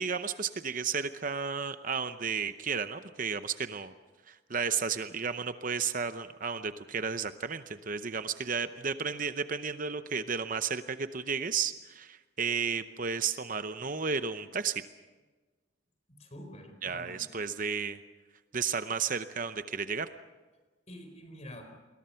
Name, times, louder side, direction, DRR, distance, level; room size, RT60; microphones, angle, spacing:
voice 1, 0.0-3.9 4.3-14.8 16.8-18.0 18.5-20.1, right 6 dB, 40° right, 10 dB, 0.7 m, -33 dB
voice 2, 16.1-17.2 20.9-21.6, equal, 35° left, 5 dB, 4.5 m, -47 dB
29.5 x 21.5 x 5.8 m, 1.3 s
head